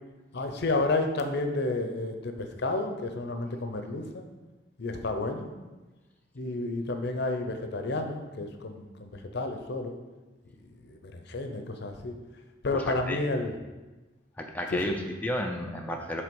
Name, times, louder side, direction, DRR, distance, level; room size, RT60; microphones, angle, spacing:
voice 1, 0.3-4.2 4.8-5.5 6.3-9.9 10.8-12.1 12.6-13.5 14.7-15.0, left 2 dB, 55° left, 6 dB, 0.6 m, -31 dB
voice 2, 12.7-13.2 14.4-16.2, left 1 dB, 10° left, 1 dB, 0.4 m, -32 dB
7.5 x 3.4 x 5.3 m, 1.2 s
head